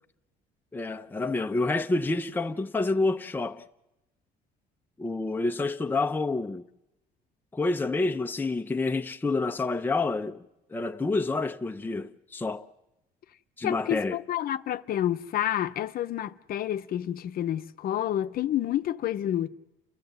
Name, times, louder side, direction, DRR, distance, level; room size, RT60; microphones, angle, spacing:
voice 1, 0.7-3.6 5.0-6.6 7.5-10.4 10.7-12.6 13.6-14.2, left 3 dB, 10° left, 0.7 m, -28 dB
voice 2, 13.6-19.5, left 11 dB, 60° left, 0.8 m, -29 dB
29.5 x 13.5 x 8.0 m
cardioid pair, 110°, 17 cm